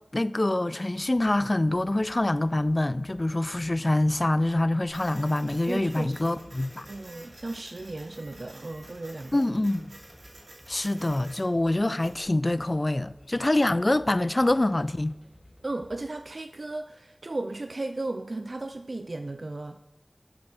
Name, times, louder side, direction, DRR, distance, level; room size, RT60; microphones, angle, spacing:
voice 1, 0.1-6.9 9.3-9.9 10.7-15.2, left 1 dB, 40° left, 0.4 m, -25 dB
sound 1, 0.9-16.2, left 1 dB, 15° left, 2.3 m, -56 dB
Printer, 4.9-12.2, right 1 dB, 80° right, 2.6 m, -50 dB
voice 2, 5.7-6.4 6.9-9.4 15.6-19.9, right 2 dB, 65° right, 0.4 m, -35 dB
10.5 x 6.3 x 5.8 m
wide cardioid pair, 40°, 0 cm